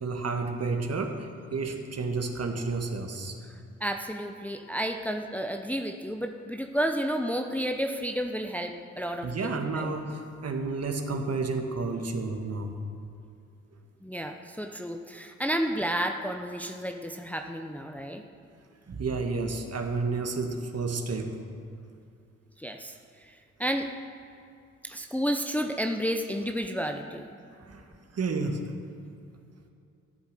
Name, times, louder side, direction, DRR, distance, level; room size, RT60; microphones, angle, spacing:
voice 1, 0.0-3.4 9.2-12.7 17.7-17.8 18.9-21.4 27.6-28.6 29.0-29.1, right 3 dB, 45° right, 4 dB, 1.8 m, -31 dB
voice 2, 3.8-9.9 14.0-18.2 22.6-22.9 23.2-23.9 24.8-27.3, equal, 5° left, 4 dB, 1.0 m, -31 dB
14.0 x 8.1 x 6.7 m, 2.5 s
hypercardioid pair, 40°, 36 cm